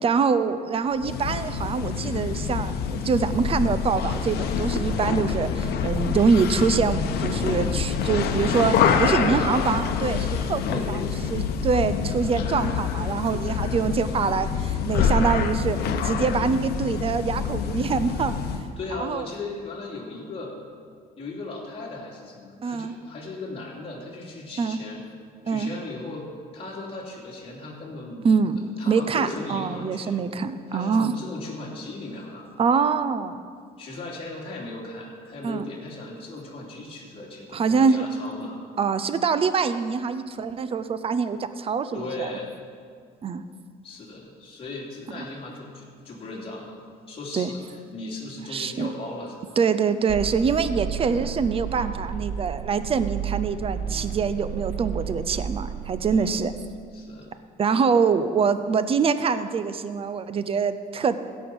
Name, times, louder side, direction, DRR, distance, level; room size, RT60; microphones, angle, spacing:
voice 1, 0.0-11.0 11.3-15.8 16.0-18.3 18.9-19.2 22.6-22.9 24.6-24.8 25.5-25.7 28.2-31.1 32.6-33.4 35.4-35.7 37.5-38.1 38.8-42.3 43.2-43.4 47.3-47.5 48.5-48.9 49.6-56.5 57.6-61.2, right 5 dB, 35° right, 12 dB, 0.6 m, -24 dB
sound 1, 0.9-18.7, left 6 dB, 70° left, 1.0 m, -26 dB
voice 2, 9.0-9.5 10.6-11.2 18.8-20.5 21.2-25.0 25.4-28.3 28.6-30.2 30.7-32.5 33.8-38.6 41.9-42.6 43.8-47.6 47.9-49.6 56.1-56.5 56.9-57.3, left 2 dB, 35° left, -4 dB, 3.1 m, -37 dB
sound 2, 50.1-56.0, right 8 dB, 50° right, 1.6 m, -32 dB
16.5 x 5.8 x 6.1 m, 2.1 s
cardioid pair, 110°, 17 cm